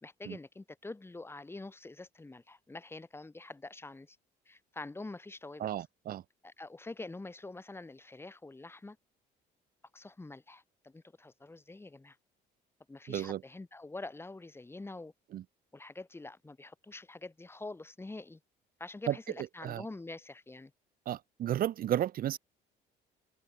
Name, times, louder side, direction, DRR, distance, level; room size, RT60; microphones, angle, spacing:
voice 1, 0.0-4.2 4.5-5.7 6.4-9.0 9.9-12.2 12.9-15.1 15.7-18.4 18.8-20.7, left 2 dB, 15° left, 2.9 m, -46 dB
voice 2, 5.6-6.2 13.1-13.4 15.3-15.4 19.1-19.8 21.0-22.4, right 12 dB, 60° right, 1.7 m, -33 dB
cardioid pair, 110°, 17 cm